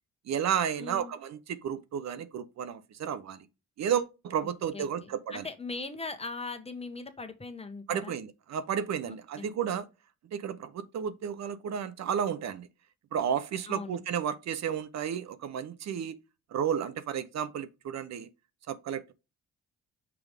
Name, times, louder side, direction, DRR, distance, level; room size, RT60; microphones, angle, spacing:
voice 1, 0.3-3.5 3.8-5.5 7.9-9.9 10.3-12.7 13.1-16.2 16.5-18.3 18.7-19.1, right 8 dB, 60° right, 0.8 m, -32 dB
voice 2, 0.8-1.1 4.7-8.2 9.1-9.5 13.7-14.0, left 3 dB, 20° left, 1.3 m, -40 dB
6.1 x 4.7 x 3.5 m
cardioid pair, 90°, 30 cm